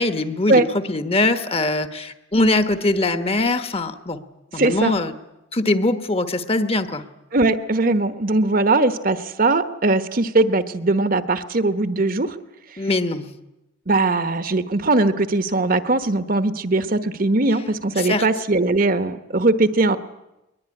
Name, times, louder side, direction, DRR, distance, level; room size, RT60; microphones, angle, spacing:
voice 1, 0.0-4.2 4.5-5.1 5.5-7.0 12.8-13.3 18.0-18.3, left 2 dB, 30° left, 10 dB, 1.2 m, -22 dB
voice 2, 4.6-4.9 7.3-12.3 13.9-20.0, right 2 dB, 45° right, 11 dB, 1.1 m, -20 dB
21.5 x 21.0 x 9.8 m, 0.95 s
head